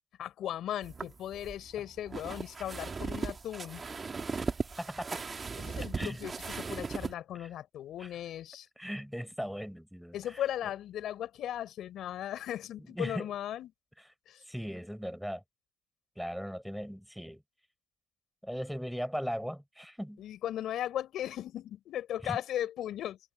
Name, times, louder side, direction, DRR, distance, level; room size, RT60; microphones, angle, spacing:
voice 1, 0.2-3.8 5.6-8.7 10.1-13.7 14.3-14.4 20.2-23.2, left 11 dB, 65° left, 4.8 m, -37 dB
sound 1, 0.8-7.1, right 4 dB, 30° right, 1.9 m, -38 dB
voice 2, 4.4-5.2 5.9-6.2 7.4-7.5 8.0-8.1 8.8-10.4 12.8-13.3 14.5-15.4 16.2-17.4 18.4-20.2 22.2-22.4, equal, ahead, 5.9 m, -38 dB
supercardioid pair, 85°, 0 cm